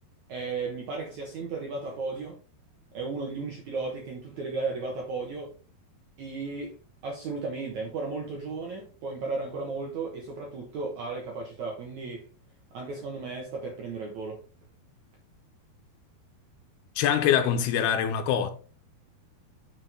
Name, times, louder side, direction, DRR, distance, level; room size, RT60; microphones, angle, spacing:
voice 1, 0.3-2.4 2.9-5.5 6.2-6.8 7.0-12.3 12.7-14.4, right 3 dB, 65° right, 1.9 m, -34 dB
voice 2, 17.0-18.5, left 9 dB, 80° left, 2.8 m, -24 dB
6.9 x 6.3 x 3.5 m
omnidirectional pair, 4.8 m